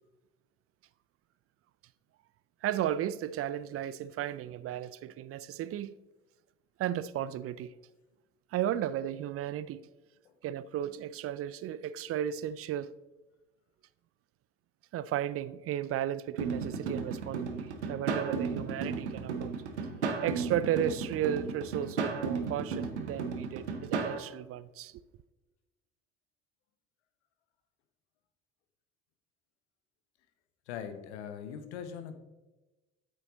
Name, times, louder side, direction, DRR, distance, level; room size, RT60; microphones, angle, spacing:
voice 1, 2.6-6.0 6.8-7.7 8.5-9.8 10.4-12.9 14.9-19.5 20.2-25.0, right 11 dB, 45° right, 0.4 m, -34 dB
sound 1, 16.4-24.2, right 5 dB, 90° right, 0.7 m, -34 dB
voice 2, 30.7-32.2, left 8 dB, 80° left, 0.8 m, -41 dB
8.5 x 6.3 x 3.9 m
hypercardioid pair, 50°, 33 cm